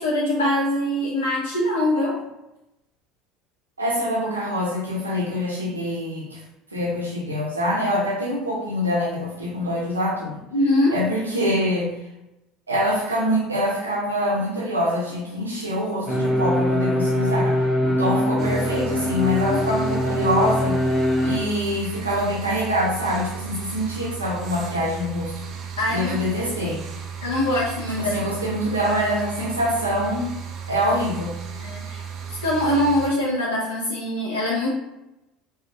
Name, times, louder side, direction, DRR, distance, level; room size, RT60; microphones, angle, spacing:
voice 1, 0.0-2.2 10.5-10.9 18.1-18.2 19.5-19.6 25.8-26.3 27.2-28.1 31.6-34.7, left 1 dB, 80° left, -5 dB, 0.4 m, -23 dB
voice 2, 3.8-6.4 6.7-10.4 10.9-11.9 12.7-20.8 21.2-25.3 25.9-26.8 28.0-30.4 30.7-31.4, equal, 85° right, -4 dB, 0.6 m, -25 dB
sound 1, 16.1-21.4, left 1 dB, 15° left, 0.5 m, -22 dB
sound 2, 18.4-33.1, right 7 dB, 45° right, 0.3 m, -35 dB
2.3 x 2.1 x 2.7 m, 0.93 s
figure-of-eight pair, 65°, 0 cm